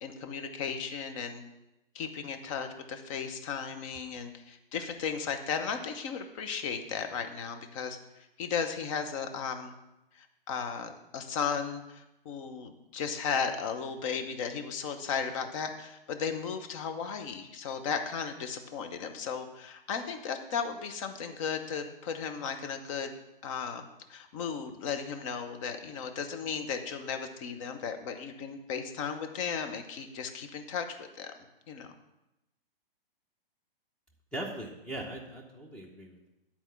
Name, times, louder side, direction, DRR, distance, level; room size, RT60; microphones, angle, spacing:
voice 1, 0.0-1.4 1.9-9.7 10.1-23.1 23.4-31.3 31.7-31.9, left 6 dB, 35° left, 6 dB, 0.9 m, -35 dB
voice 2, 34.3-36.3, right 1 dB, 5° left, -3 dB, 0.8 m, -40 dB
11.0 x 4.3 x 5.7 m, 0.93 s
figure-of-eight pair, 115°, 29 cm